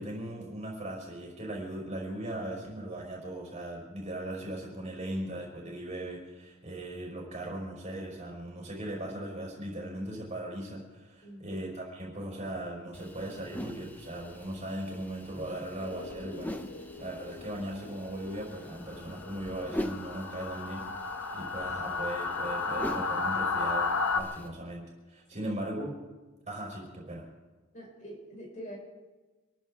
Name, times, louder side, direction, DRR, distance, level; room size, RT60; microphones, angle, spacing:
voice 1, 0.0-20.8 21.3-25.9 26.5-27.3, right 1 dB, 30° right, -2 dB, 4.4 m, -38 dB
voice 2, 11.2-11.6 25.3-25.6 27.7-28.8, equal, 35° left, -2 dB, 4.7 m, -45 dB
sound 1, 12.9-24.5, equal, 10° left, 0.7 m, -43 dB
sound 2, 15.8-24.2, left 4 dB, 90° left, 1.1 m, -34 dB
27.0 x 13.5 x 3.5 m, 1.2 s
head